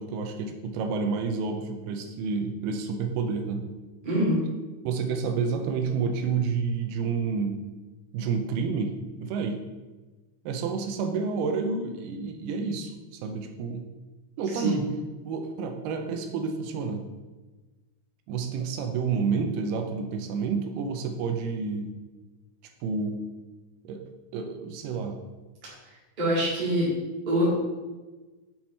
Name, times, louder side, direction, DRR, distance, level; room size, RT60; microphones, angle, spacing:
voice 1, 0.0-3.7 4.8-7.6 8.1-9.6 10.5-13.9 14.4-14.9 15.2-17.1 18.3-21.9 22.8-23.2 23.8-24.1 24.3-25.2, right 5 dB, 85° right, 4 dB, 2.6 m, -29 dB
voice 2, 4.0-4.4 14.5-14.8 26.2-26.9 27.3-27.5, equal, 25° right, -6 dB, 1.1 m, -24 dB
7.4 x 4.4 x 4.2 m, 1.2 s
omnidirectional pair, 4.6 m